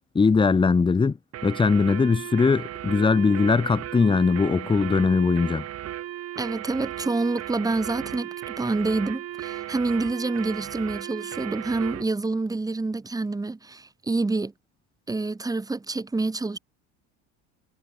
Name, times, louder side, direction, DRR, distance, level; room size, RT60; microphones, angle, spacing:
voice 1, 0.1-1.2 1.4-5.6, left 4 dB, 15° left, 1.5 m, -20 dB
sound 1, 1.3-12.1, right 12 dB, 40° right, 3.4 m, -36 dB
voice 2, 6.4-14.5 15.1-16.6, right 3 dB, 10° right, 4.2 m, -27 dB
cardioid pair, 160°, 39 cm